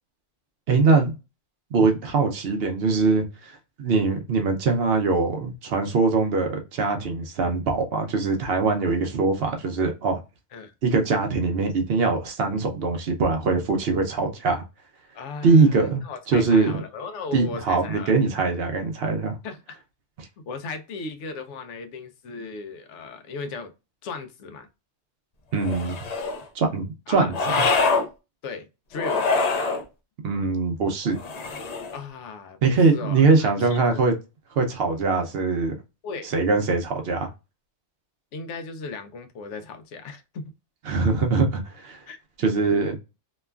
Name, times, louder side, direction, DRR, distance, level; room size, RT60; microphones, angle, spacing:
voice 1, 0.7-1.1 1.7-10.2 10.8-14.6 15.4-16.7 17.3-19.4 20.2-20.3 25.5-26.0 26.5-27.6 30.2-31.2 32.6-34.1 34.6-35.8 36.2-37.3 40.9-42.0 42.4-43.0, right 4 dB, 65° right, 0.8 m, -22 dB
voice 2, 15.1-18.2 19.4-19.8 20.5-23.7 24.0-24.7 27.1-27.3 28.4-29.2 31.9-34.0 36.0-36.3 38.3-40.5 42.1-42.2, left 4 dB, 80° left, 0.9 m, -36 dB
sound 1, 25.6-26.4 27.3-28.1 28.9-29.8 31.2-32.0, left 4 dB, 60° left, 0.4 m, -24 dB
3.0 x 2.2 x 2.2 m
omnidirectional pair, 1.2 m